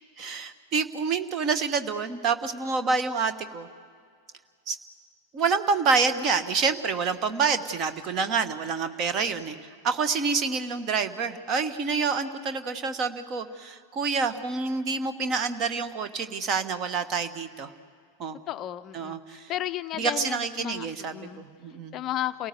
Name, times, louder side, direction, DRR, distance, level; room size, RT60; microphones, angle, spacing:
voice 1, 0.2-3.7 4.7-4.8 5.3-9.6 9.8-17.7 18.2-18.4 18.9-19.5 20.0-21.9, right 5 dB, 35° right, 11 dB, 1.3 m, -27 dB
voice 2, 18.5-21.4 21.9-22.5, left 13 dB, 35° left, 13 dB, 0.5 m, -33 dB
28.5 x 18.0 x 8.1 m, 2.1 s
figure-of-eight pair, 90°, 0 cm